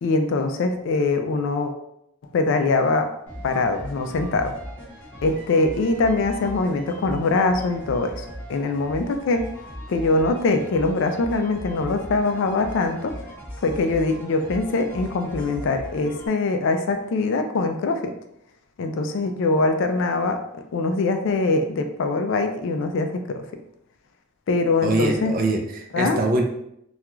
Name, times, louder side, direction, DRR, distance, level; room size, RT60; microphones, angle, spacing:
voice 1, 0.0-1.7 2.3-3.1 3.4-4.5 5.2-8.2 8.5-9.4 9.9-13.1 13.6-18.0 18.8-20.4 20.7-23.4 24.5-25.3 25.9-26.2, left 3 dB, 60° left, 6 dB, 0.3 m, -23 dB
sound 1, 3.3-16.3, equal, 10° left, 0.9 m, -38 dB
voice 2, 24.8-26.4, right 2 dB, 40° right, 2 dB, 0.4 m, -23 dB
2.3 x 2.2 x 3.0 m, 0.76 s
head